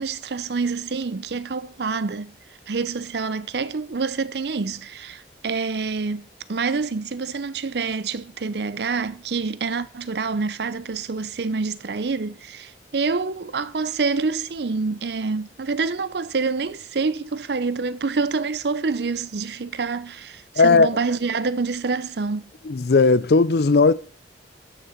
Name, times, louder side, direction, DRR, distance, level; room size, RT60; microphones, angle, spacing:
voice 1, 0.0-2.3 2.7-22.5, right 4 dB, 70° right, 0.6 m, -27 dB
voice 2, 20.6-20.9 22.7-23.9, left 4 dB, 65° left, 0.5 m, -16 dB
12.0 x 6.4 x 4.5 m
head